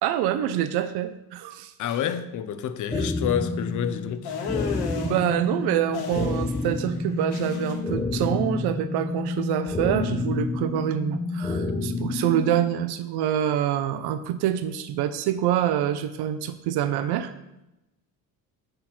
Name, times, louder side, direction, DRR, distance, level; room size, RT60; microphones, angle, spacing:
voice 1, 0.0-1.7 2.9-3.1 5.0-17.3, right 11 dB, 80° right, 0.6 m, -26 dB
voice 2, 1.8-4.3, left 9 dB, 50° left, 0.6 m, -28 dB
sound 1, 2.9-12.9, left 3 dB, 10° left, 0.5 m, -29 dB
sound 2, 4.2-5.2 5.9-6.7 6.9-7.7, left 6 dB, 80° left, 1.2 m, -32 dB
7.9 x 4.2 x 4.2 m
cardioid pair, 115°, 39 cm